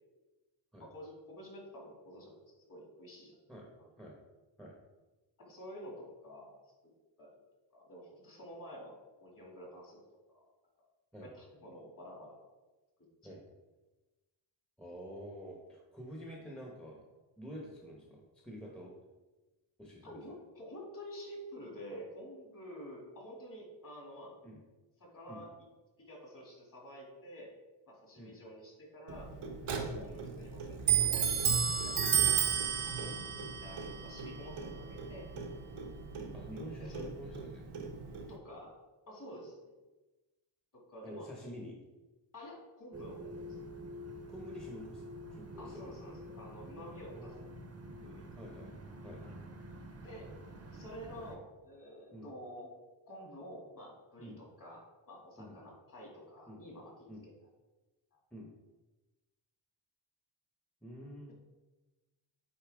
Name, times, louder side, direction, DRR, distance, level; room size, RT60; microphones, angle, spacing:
voice 1, 0.8-3.4 5.4-6.5 7.2-7.3 7.7-10.0 10.3-10.5 11.2-12.4 13.2-13.4 20.0-24.3 25.0-25.7 26.0-27.5 27.9-29.3 29.6-32.3 32.9-35.3 36.8-37.0 38.3-38.7 39.1-39.7 40.7-41.3 42.3-43.6 45.6-47.4 48.0-48.4 50.0-50.3 50.7-52.7 53.1-57.3 58.1-58.2, equal, 40° left, -2 dB, 2.3 m, -49 dB
voice 2, 14.8-17.0 17.4-18.9 19.8-20.2 24.4-24.6 25.3-25.4 28.2-28.4 29.9-30.1 33.0-33.2 36.3-37.7 41.0-41.8 44.3-45.1 45.3-45.9 47.1-47.5 48.4-48.8 49.0-49.4 52.1-52.3 54.2-54.4 55.4-55.6 56.5-56.6 57.1-57.2 58.3-58.5 60.8-61.3, equal, ahead, -2 dB, 1.0 m, -48 dB
Clock, 29.1-38.4, right 7 dB, 80° right, 1.1 m, -33 dB
sound 1, 42.9-51.4, equal, 30° right, 0.9 m, -48 dB
8.7 x 4.2 x 3.5 m, 1.1 s
wide cardioid pair, 125°, 49 cm